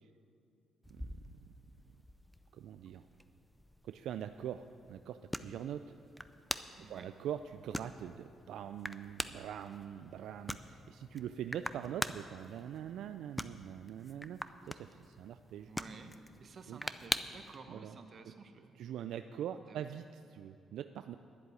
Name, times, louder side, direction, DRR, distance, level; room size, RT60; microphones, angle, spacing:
sound 1, 0.8-17.6, equal, 5° left, 0.5 m, -45 dB
voice 1, 0.9-1.5 2.5-3.1 3.8-5.9 6.9-15.7 16.7-16.8 17.7-18.0 18.8-21.2, right 10 dB, 80° right, 9 dB, 0.3 m, -43 dB
voice 2, 6.8-7.1 15.6-18.8 19.7-20.1, right 4 dB, 50° right, 7 dB, 1.1 m, -52 dB
11.0 x 7.7 x 9.9 m, 2.8 s
cardioid pair, 90°, 0 cm